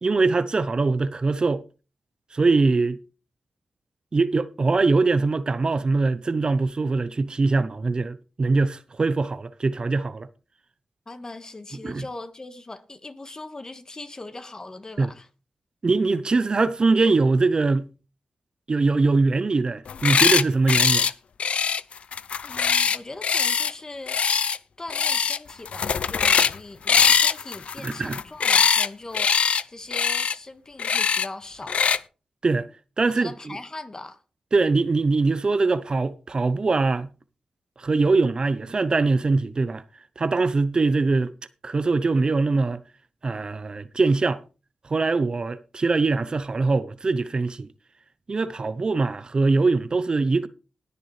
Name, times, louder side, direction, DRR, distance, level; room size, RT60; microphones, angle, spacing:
voice 1, 0.0-1.6 2.3-3.0 4.1-10.3 11.8-12.1 15.0-15.1 15.8-17.9 18.7-21.1 27.8-28.2 32.4-32.7 33.0-33.5 34.5-37.1 37.8-39.8 40.2-41.3 41.6-42.8 43.2-44.4 44.8-47.7 48.3-50.5, right 3 dB, 45° right, 0.6 m, -22 dB
voice 2, 11.0-15.3 22.4-24.2 24.8-32.0 33.1-34.2, left 2 dB, 30° left, 1.6 m, -40 dB
sound 1, 19.9-20.4 20.7-21.1 21.4-23.7 24.1-24.6 24.9-25.4 25.6-26.6 26.9-28.9 29.1-29.6 29.9-30.3 30.8-31.3 31.7-32.0, left 6 dB, 70° left, 0.5 m, -21 dB
20.0 x 6.8 x 3.2 m
cardioid pair, 65°, 2 cm